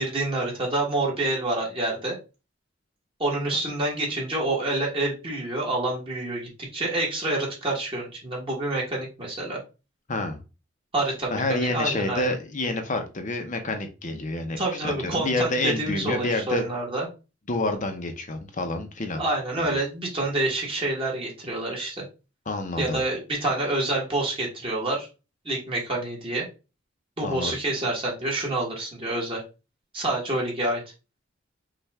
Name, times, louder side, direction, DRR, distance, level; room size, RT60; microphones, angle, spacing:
voice 1, 0.0-2.2 3.2-9.6 10.9-12.3 14.6-17.1 19.2-21.9 22.8-25.1 25.4-26.5 27.2-29.4 29.9-30.8, right 2 dB, 30° right, -3 dB, 1.5 m, -27 dB
voice 2, 10.1-10.4 11.3-16.7 17.5-19.2 22.5-23.0 27.2-27.5, left 2 dB, 40° left, 6 dB, 0.8 m, -28 dB
5.5 x 2.5 x 3.5 m, 0.30 s
head